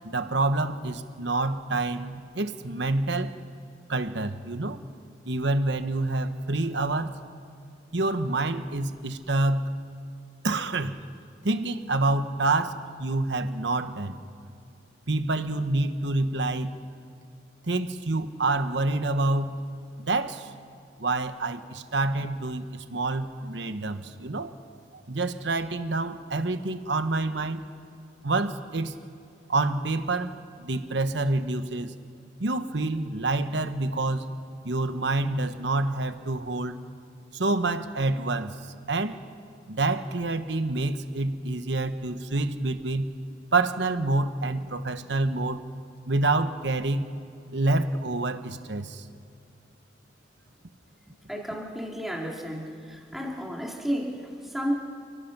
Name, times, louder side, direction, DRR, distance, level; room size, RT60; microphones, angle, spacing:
voice 1, 0.0-3.4 3.9-4.8 5.2-7.2 7.9-9.7 10.4-11.0 11.4-14.2 15.1-16.7 17.7-19.6 20.1-20.5 21.0-24.5 24.9-27.6 28.2-28.9 29.5-31.9 32.4-34.3 34.6-36.8 37.3-38.6 38.9-39.2 39.7-43.1 43.5-45.6 46.1-47.0 47.5-49.0, right 2 dB, 70° right, 10 dB, 1.1 m, -27 dB
voice 2, 51.3-54.7, equal, ahead, -1 dB, 2.7 m, -32 dB
29.0 x 17.5 x 6.0 m, 2.5 s
head